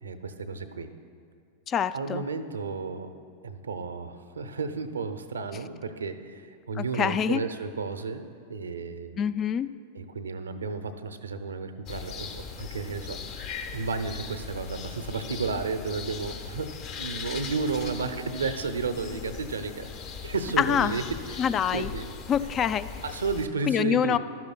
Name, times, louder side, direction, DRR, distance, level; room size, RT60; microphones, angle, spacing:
voice 1, 0.0-0.9 1.9-3.1 3.4-9.2 9.9-16.7 17.0-21.0 21.3-21.4 21.7-22.1 23.0-24.2, right 4 dB, 80° right, 9 dB, 0.6 m, -33 dB
voice 2, 1.7-2.2 6.8-7.4 9.2-9.7 20.6-21.0 21.4-21.9 22.3-22.9 23.7-24.2, left 8 dB, 30° left, 14 dB, 0.3 m, -25 dB
sound 1, 11.9-23.5, left 6 dB, 45° left, 1.0 m, -39 dB
15.0 x 12.0 x 2.3 m, 2.3 s
figure-of-eight pair, 90°, 0 cm